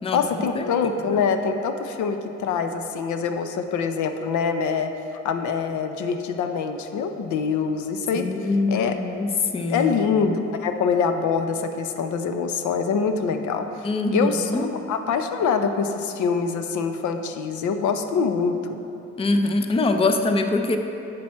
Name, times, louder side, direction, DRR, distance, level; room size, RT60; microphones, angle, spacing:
voice 1, 0.1-4.9 5.2-9.0 9.7-18.8, left 5 dB, 75° left, 7 dB, 0.6 m, -25 dB
voice 2, 8.1-9.3 9.5-9.9 10.3-10.4 13.8-14.7 19.2-20.8, left 2 dB, 20° left, 6 dB, 0.5 m, -23 dB
7.7 x 5.8 x 4.2 m, 3.0 s
cardioid pair, 90°, 30 cm